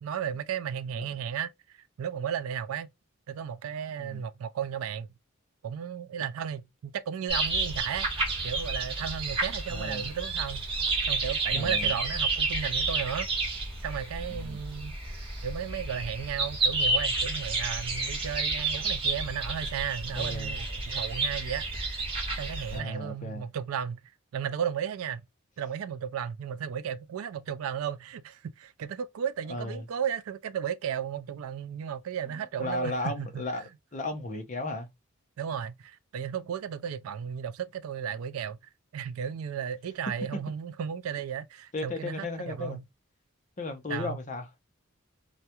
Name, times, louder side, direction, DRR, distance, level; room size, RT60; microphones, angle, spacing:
voice 1, 0.0-2.9 3.3-5.1 5.6-8.1 8.4-10.7 11.1-13.3 13.8-15.0 15.4-21.7 22.4-24.0 24.3-25.2 25.6-33.7 35.4-38.6 38.9-42.8 43.9-44.2, right 8 dB, 80° right, 0.3 m, -34 dB
voice 2, 0.9-1.3 4.0-4.3 9.7-10.1 11.5-11.9 14.3-14.6 20.2-20.6 22.7-23.5 29.5-29.9 32.3-33.6 33.9-34.9 41.7-42.8 43.6-44.4, left 2 dB, 35° left, 0.5 m, -35 dB
sound 1, 7.3-22.8, right 3 dB, 25° right, 0.8 m, -30 dB
2.3 x 2.1 x 2.8 m
head